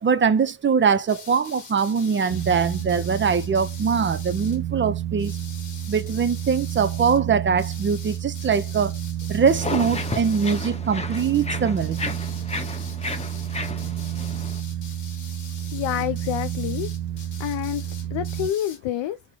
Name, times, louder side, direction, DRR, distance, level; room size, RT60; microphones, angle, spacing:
voice 1, 0.0-5.3 5.9-8.9 9.3-12.2, right 6 dB, 30° right, 0.4 m, -22 dB
sound 1, 1.1-4.6 5.2-7.2 7.6-10.8 11.1-11.5 11.8-18.8, left 5 dB, 40° left, 1.6 m, -44 dB
sound 2, 2.3-18.5, right 11 dB, 90° right, 0.5 m, -30 dB
sound 3, 9.5-14.6, left 3 dB, 15° left, 0.6 m, -33 dB
voice 2, 15.7-16.9 17.4-17.8 18.1-19.2, left 12 dB, 75° left, 0.5 m, -27 dB
4.8 x 2.1 x 3.8 m
cardioid pair, 140°, 45 cm